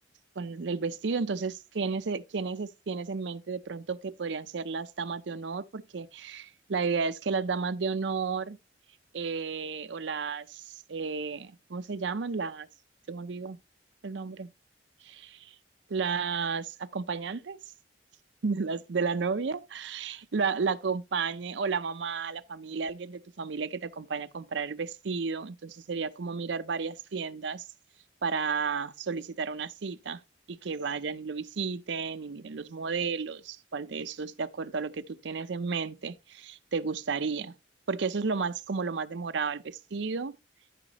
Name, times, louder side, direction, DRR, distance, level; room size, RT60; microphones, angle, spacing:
voice 1, 0.4-8.6 9.1-12.7 13.1-13.6 14.0-14.5 15.0-15.5 15.9-17.6 18.4-27.6 28.2-30.2 30.5-37.5 37.9-40.4, right 5 dB, 70° right, 0.6 m, -32 dB
14.0 x 5.1 x 2.9 m
head